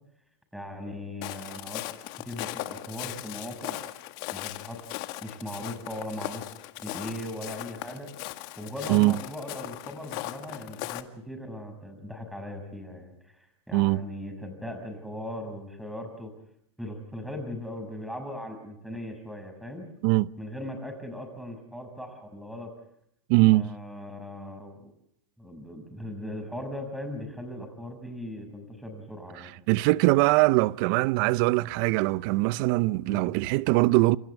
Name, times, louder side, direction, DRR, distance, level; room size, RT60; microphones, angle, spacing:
voice 1, 0.5-1.8 2.2-3.8 4.3-4.8 5.2-6.4 6.8-8.1 8.6-16.3 16.8-19.8 20.4-22.7 23.5-24.9 25.4-29.5 33.1-33.3, left 1 dB, ahead, 6.5 m, -39 dB
Walk footsteps, 1.2-11.0, left 17 dB, 50° left, 1.8 m, -38 dB
voice 2, 23.3-23.7 29.7-34.2, right 20 dB, 50° right, 0.8 m, -22 dB
30.0 x 28.0 x 3.6 m
hypercardioid pair, 125°, 15 cm